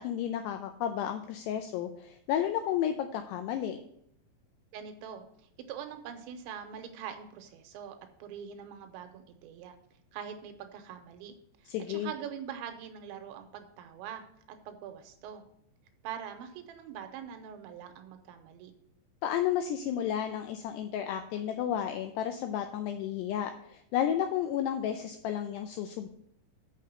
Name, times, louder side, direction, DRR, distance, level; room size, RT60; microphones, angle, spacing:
voice 1, 0.0-3.8 11.7-12.1 19.2-26.1, left 10 dB, 90° left, 7 dB, 2.4 m, -32 dB
voice 2, 4.7-9.8 10.1-14.2 14.5-15.4 16.0-18.7, right 8 dB, 80° right, 7 dB, 3.0 m, -43 dB
6.8 x 6.6 x 6.5 m, 0.70 s
omnidirectional pair, 5.4 m